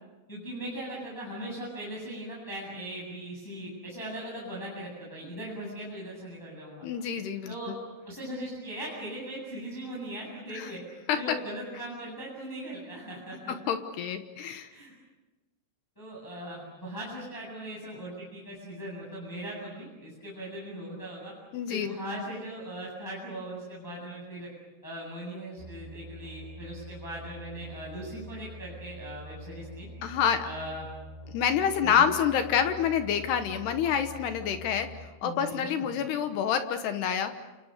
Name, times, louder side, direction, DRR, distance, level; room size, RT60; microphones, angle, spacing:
voice 1, 0.3-6.8 7.5-7.7 8.0-10.8 11.1-13.5 14.7-14.9 16.0-21.3 21.7-24.5 24.8-29.9 30.4-30.9 31.8-32.1 35.2-36.0, right 1 dB, 5° left, -5 dB, 7.5 m, -39 dB
voice 2, 6.8-7.7 10.5-10.7 11.1-11.4 13.5-14.7 21.5-21.9 30.0-30.5 31.3-37.3, left 8 dB, 70° left, 8 dB, 2.8 m, -28 dB
sound 1, 25.6-35.1, equal, 65° right, 6.0 m, -45 dB
29.0 x 29.0 x 6.7 m, 1.1 s
omnidirectional pair, 5.8 m